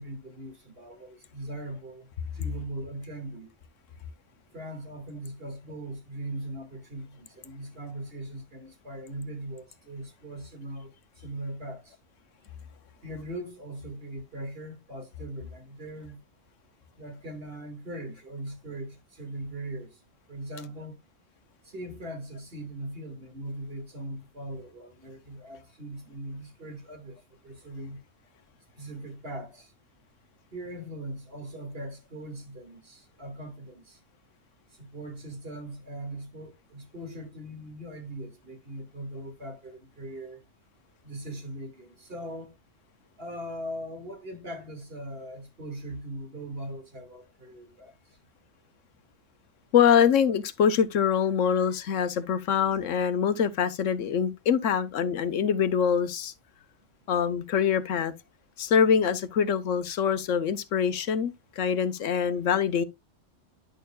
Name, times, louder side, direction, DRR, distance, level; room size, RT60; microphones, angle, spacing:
voice 1, 0.0-2.1 2.3-3.5 4.5-12.0 13.0-16.2 16.9-20.0 20.3-21.0 21.6-28.0 28.8-29.7 30.5-34.0 34.7-40.4 41.0-42.6 43.2-48.0, right 1 dB, 50° right, 2.2 m, -40 dB
voice 2, 49.7-56.3 57.1-58.1 58.6-62.8, left 7 dB, 90° left, 1.2 m, -24 dB
10.0 x 6.6 x 2.2 m
omnidirectional pair, 1.3 m